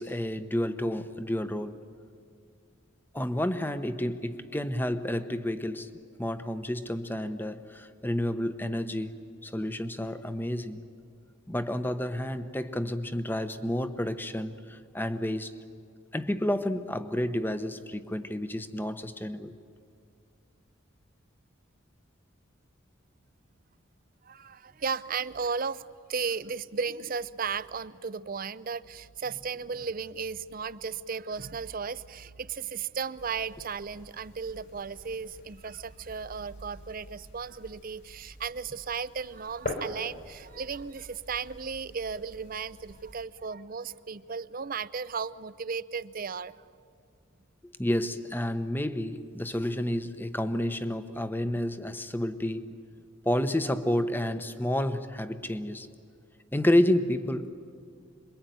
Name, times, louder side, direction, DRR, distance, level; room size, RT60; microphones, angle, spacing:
voice 1, 0.0-1.8 3.1-5.9 6.2-9.1 9.4-10.8 11.5-15.5 16.1-19.5 47.8-52.7 53.2-55.9 56.5-57.6, left 1 dB, 10° left, 0.9 m, -30 dB
voice 2, 24.2-25.8 26.1-46.5, right 5 dB, 45° right, 0.6 m, -35 dB
sound 1, 33.2-43.3, left 1 dB, 55° left, 3.5 m, -45 dB
27.0 x 23.0 x 9.3 m
head